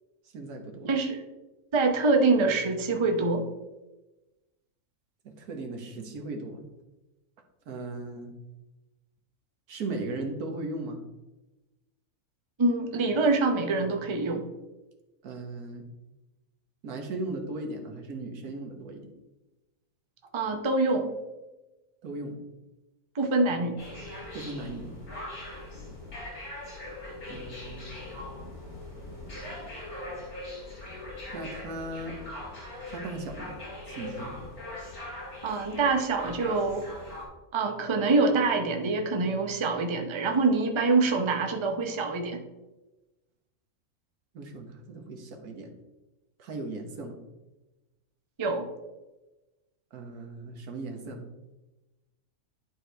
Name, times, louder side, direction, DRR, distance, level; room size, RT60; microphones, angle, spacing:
voice 1, 0.3-0.9 5.2-6.6 7.7-8.3 9.7-11.0 15.2-15.9 16.8-19.1 22.0-22.4 24.3-24.9 27.3-27.9 31.3-32.2 32.8-33.5 33.8-34.3 44.3-45.7 46.4-47.2 49.9-51.2, right 2 dB, 85° right, 3 dB, 1.6 m, -37 dB
voice 2, 0.8-1.2 1.7-3.5 12.6-14.4 20.3-21.1 23.1-23.8 35.4-36.9 37.5-42.4 48.4-48.7, right 3 dB, 25° right, 4 dB, 0.6 m, -25 dB
sound 1, 23.8-37.3, left 1 dB, 75° left, 3.5 m, -41 dB
11.0 x 4.7 x 3.3 m, 1.1 s
omnidirectional pair, 1.6 m